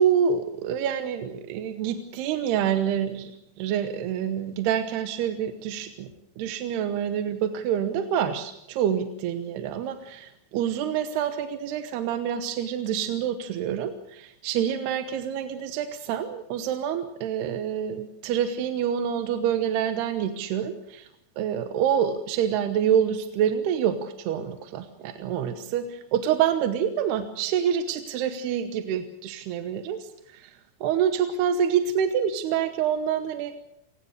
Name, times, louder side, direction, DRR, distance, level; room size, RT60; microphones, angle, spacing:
voice 1, 0.0-3.3 3.6-6.1 6.4-21.1 21.4-33.6, right 8 dB, 75° right, 9 dB, 3.0 m, -27 dB
29.0 x 18.0 x 6.6 m, 0.79 s
omnidirectional pair, 5.1 m